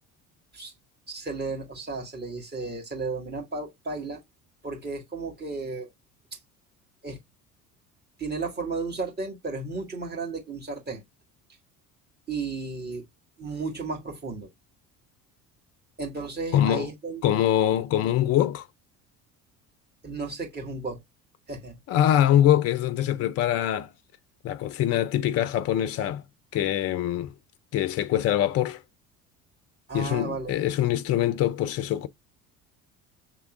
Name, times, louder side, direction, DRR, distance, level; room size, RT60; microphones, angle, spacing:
voice 1, 1.1-4.2 4.6-5.9 7.0-7.2 8.2-11.0 12.3-13.0 13.4-14.5 16.0-17.2 20.0-21.0 21.5-21.8 29.9-30.7, right 3 dB, 20° right, 1.8 m, -34 dB
voice 2, 16.5-16.9 17.2-18.7 21.9-23.9 24.4-26.2 26.5-27.3 27.7-28.8 29.9-32.1, left 11 dB, 35° left, 0.5 m, -23 dB
6.1 x 3.5 x 2.4 m
figure-of-eight pair, 60°, 45 cm